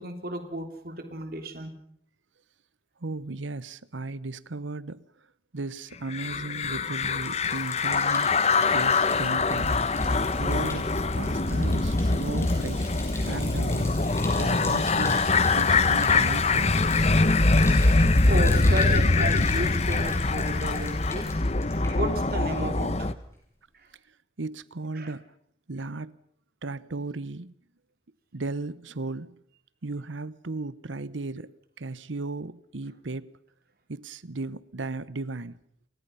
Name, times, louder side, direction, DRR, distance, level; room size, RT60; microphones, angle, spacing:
voice 1, 0.0-1.7 18.3-21.4 21.9-23.1 25.0-25.1, right 1 dB, 50° right, 3.4 m, -33 dB
voice 2, 3.0-5.0 5.5-8.3 8.7-9.9 10.4-10.9 11.1-12.9 13.2-13.9 14.3-15.3 15.5-16.8 24.4-25.3 25.7-26.2 26.6-27.5 28.3-29.4 29.8-33.3 33.9-35.6, right 3 dB, 85° right, 1.0 m, -35 dB
sound 1, 6.1-23.1, left 3 dB, 35° left, 0.9 m, -23 dB
Bathtub (filling or washing), 6.4-22.5 22.8-23.3, left 3 dB, 15° left, 6.5 m, -43 dB
29.5 x 23.5 x 5.7 m
head